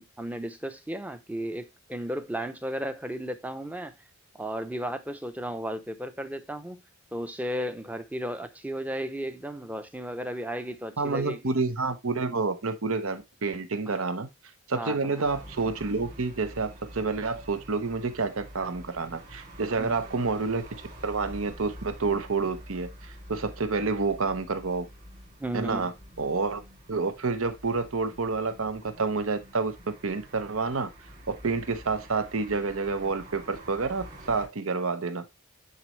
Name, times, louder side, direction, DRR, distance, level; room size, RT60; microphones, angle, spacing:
voice 1, 0.0-3.9 4.3-6.8 7.1-11.5 13.9-14.0 14.8-15.2 19.8-20.0 25.4-25.9, equal, 5° right, 0.6 m, -34 dB
voice 2, 11.0-14.3 14.7-20.6 21.0-22.9 23.3-24.9 25.5-25.9 26.2-26.6 26.9-29.7 30.0-30.9 31.3-35.2, right 4 dB, 70° right, 0.9 m, -29 dB
sound 1, 15.2-34.5, equal, 35° right, 2.6 m, -47 dB
9.6 x 4.1 x 3.1 m
head